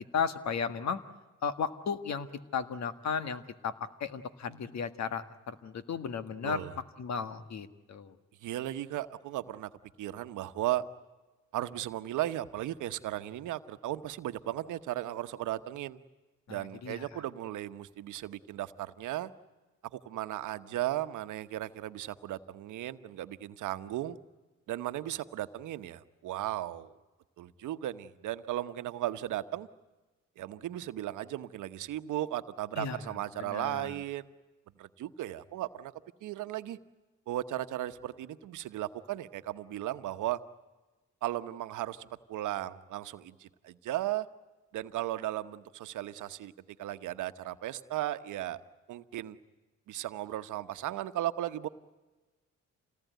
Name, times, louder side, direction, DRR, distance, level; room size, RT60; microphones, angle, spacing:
voice 1, 0.1-1.0 1.4-2.3 2.5-3.7 4.0-6.6 7.0-8.1 16.5-17.0 32.8-33.0 33.4-33.9, left 6 dB, 65° left, 11 dB, 1.7 m, -34 dB
voice 2, 6.4-6.7 8.4-9.7 10.0-10.8 11.5-16.0 16.5-19.3 19.9-24.2 24.7-26.9 27.4-29.7 30.4-34.3 34.8-35.9 36.2-36.8 37.3-40.4 41.2-44.3 44.7-46.5 46.8-48.6 48.9-49.4 49.9-51.7, right 14 dB, 80° right, 11 dB, 1.1 m, -36 dB
27.5 x 18.5 x 9.3 m, 1.2 s
cardioid pair, 90°, 30 cm